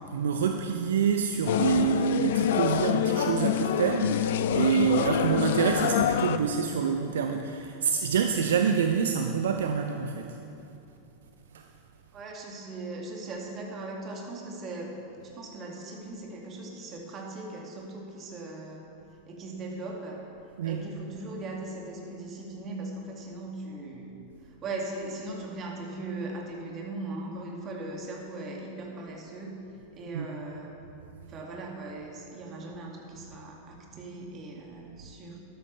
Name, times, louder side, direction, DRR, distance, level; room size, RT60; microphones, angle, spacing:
voice 1, 0.1-10.3 11.5-11.7 20.6-20.8 30.1-30.3, right 7 dB, 70° right, 5 dB, 0.5 m, -27 dB
sound 1, 1.5-6.4, left 9 dB, 60° left, 0.4 m, -26 dB
voice 2, 12.1-18.9 19.3-20.2 20.6-24.2 24.5-29.6 29.9-30.8 31.3-35.4, right 2 dB, 30° right, 0 dB, 2.2 m, -39 dB
12.5 x 12.0 x 3.3 m, 2.7 s
figure-of-eight pair, 90°, 0 cm